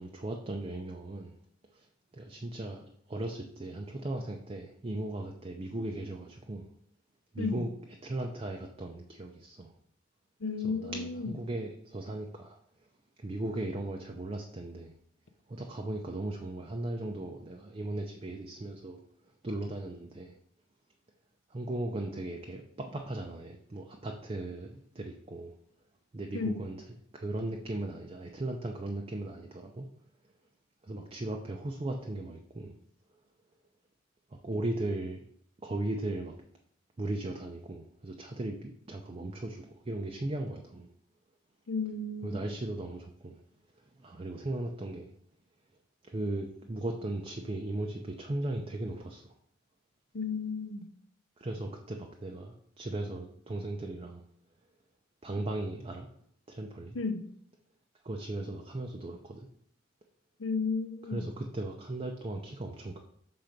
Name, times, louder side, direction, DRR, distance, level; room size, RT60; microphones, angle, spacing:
voice 1, 0.0-1.3 1.7-1.9 2.1-6.7 7.3-7.7 8.0-9.7 10.6-12.6 13.2-14.9 15.5-19.0 19.4-20.3 21.5-25.6 26.1-26.8 27.1-29.8 30.8-32.7 34.4-35.2 35.6-36.3 37.0-40.9 42.2-43.4 44.0-45.1 46.0-49.2 51.4-54.2 55.2-56.1 56.5-57.0 58.0-59.5 61.0-63.0, right 2 dB, 30° right, 2 dB, 0.5 m, -37 dB
voice 2, 10.4-11.2 26.3-26.6 41.7-42.4 50.1-50.9 56.9-57.2 60.4-61.2, left 4 dB, 80° left, 10 dB, 0.6 m, -33 dB
5.9 x 3.9 x 5.1 m, 0.67 s
head